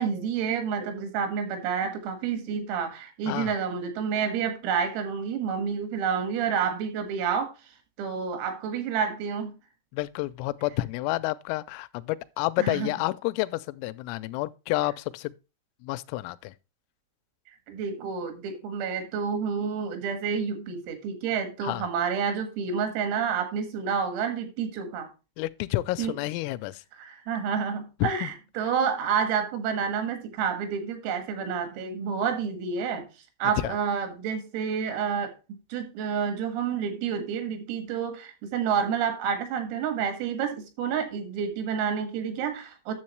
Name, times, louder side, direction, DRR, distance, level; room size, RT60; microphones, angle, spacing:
voice 1, 0.0-7.5 8.0-9.5 12.6-12.9 17.5-25.1 26.0-26.1 26.9-33.1 33.4-35.3 35.7-42.9, right 6 dB, 80° right, 4.4 m, -29 dB
voice 2, 9.9-15.3 15.8-16.5 21.6-21.9 25.4-26.8 28.0-28.3 33.6-33.7, left 18 dB, 85° left, 3.2 m, -30 dB
11.0 x 7.1 x 3.1 m
omnidirectional pair, 5.9 m